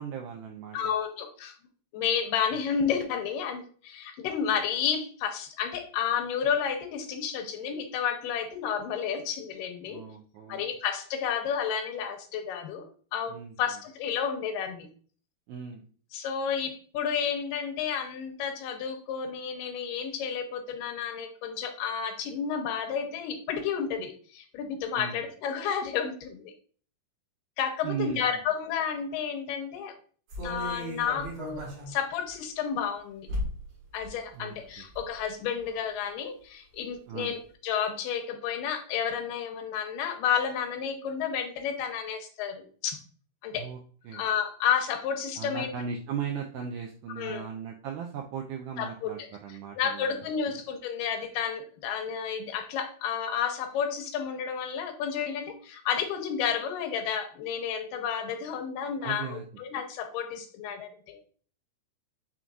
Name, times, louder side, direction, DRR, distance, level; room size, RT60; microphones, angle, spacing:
voice 1, 0.0-0.8 9.8-10.7 13.3-13.8 15.5-15.8 25.0-25.2 27.8-28.2 34.3-34.9 37.1-37.4 43.5-43.8 44.1-44.3 45.4-50.2 59.0-59.4, right 7 dB, 85° right, 1 dB, 1.8 m, -37 dB
voice 2, 0.7-1.5 1.9-10.0 10.5-12.8 13.1-14.9 16.1-26.5 27.6-29.9 30.4-33.3 33.9-37.4 37.6-43.0 43.4-43.7 44.1-45.7 47.2-47.4 48.8-49.1 49.8-61.2, left 7 dB, 85° left, 5 dB, 2.3 m, -31 dB
sound 1, 30.3-31.9 32.3-32.4 33.3-33.7 34.0-34.1 34.6-35.2 35.6-35.7, equal, 55° right, 2.0 m, -35 dB
5.9 x 3.8 x 2.3 m, 0.43 s
omnidirectional pair, 4.0 m